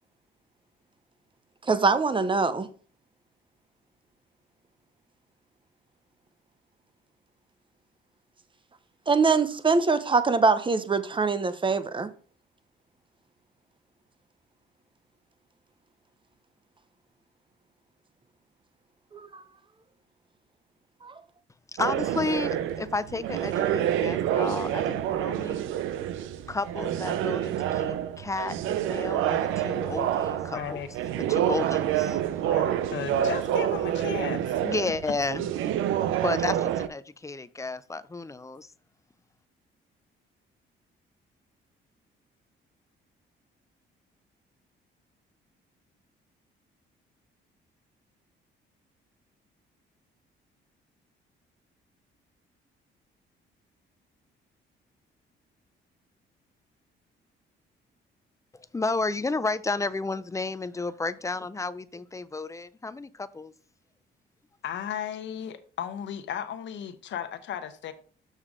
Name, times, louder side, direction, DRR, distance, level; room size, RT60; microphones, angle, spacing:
voice 1, 1.7-2.7 9.1-12.1 19.1-19.4 21.0-21.1, right 4 dB, 25° right, 0.8 m, -23 dB
voice 2, 21.8-25.6 26.5-30.8 31.2-32.2 34.6-35.5 36.2-38.7 58.7-63.5, left 3 dB, 15° left, 0.5 m, -32 dB
sound 1, 21.8-36.9, right 11 dB, 90° right, 0.6 m, -28 dB
voice 3, 30.5-30.9 32.4-34.6 64.6-67.9, left 9 dB, 65° left, 0.8 m, -35 dB
6.5 x 6.4 x 3.6 m
cardioid pair, 90°, 20 cm